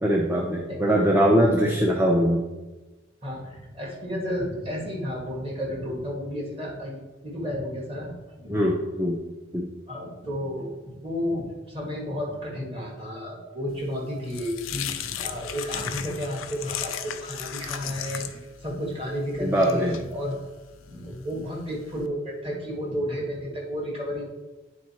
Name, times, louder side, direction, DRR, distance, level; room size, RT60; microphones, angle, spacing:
voice 1, 0.0-2.4 8.5-9.2 9.5-9.7 19.4-20.0, equal, 10° right, -1 dB, 0.5 m, -22 dB
voice 2, 3.2-6.9 7.2-8.6 9.9-20.4 20.8-24.3, equal, 30° right, -3 dB, 1.7 m, -32 dB
sound 1, 13.8-22.1, left 10 dB, 85° left, 0.5 m, -37 dB
9.2 x 3.8 x 4.3 m, 1.2 s
head